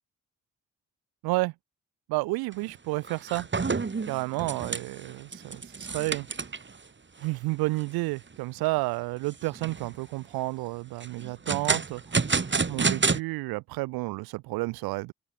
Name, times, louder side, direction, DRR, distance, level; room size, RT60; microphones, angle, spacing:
voice 1, 2.1-3.5 4.1-6.3 7.2-12.0 12.4-15.1, right 23 dB, 90° right, 4.3 m, -31 dB
sound 1, 2.5-2.7 3.0-6.8 7.2-7.3 7.8-7.9 8.3-8.8 9.3-10.0 11.0-13.2, right 4 dB, 30° right, 2.1 m, -29 dB
supercardioid pair, 45°, 36 cm